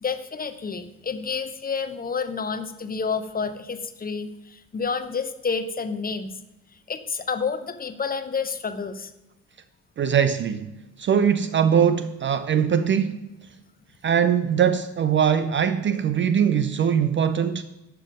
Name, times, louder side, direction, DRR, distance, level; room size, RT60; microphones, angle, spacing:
voice 1, 0.0-6.3 6.9-9.1, left 5 dB, 20° left, 0.8 m, -29 dB
voice 2, 10.0-13.3 14.0-17.6, right 8 dB, 30° right, 0.5 m, -21 dB
12.0 x 6.9 x 5.0 m
figure-of-eight pair, 50°, 42 cm